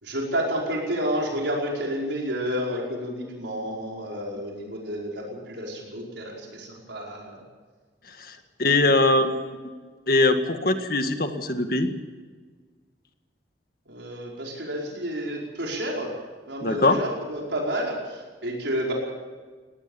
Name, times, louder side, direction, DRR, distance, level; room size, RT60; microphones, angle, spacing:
voice 1, 0.0-7.4 8.8-9.2 13.9-16.1 16.5-18.9, equal, 75° right, -2 dB, 5.2 m, -30 dB
voice 2, 8.6-9.7 10.1-11.9 16.6-17.0, left 2 dB, 50° left, 7 dB, 1.9 m, -21 dB
20.5 x 18.0 x 7.1 m, 1.4 s
head